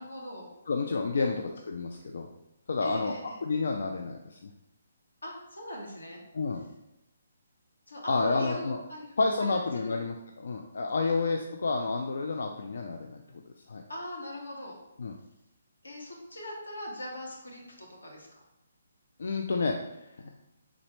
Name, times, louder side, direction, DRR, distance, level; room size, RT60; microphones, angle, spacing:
voice 1, 0.0-0.5 1.2-1.6 2.8-3.4 5.2-6.2 7.9-10.0 11.1-11.2 13.9-14.8 15.8-18.4, left 1 dB, 90° left, -1 dB, 1.2 m, -41 dB
voice 2, 0.7-2.3 2.7-3.1 3.4-4.5 6.3-6.6 8.1-8.8 9.2-10.1 10.4-13.2 13.7-13.8 15.0-15.1 19.2-19.8 20.2-20.3, left 3 dB, 65° left, 2 dB, 0.3 m, -29 dB
3.9 x 3.3 x 3.1 m, 0.89 s
figure-of-eight pair, 140°, 0 cm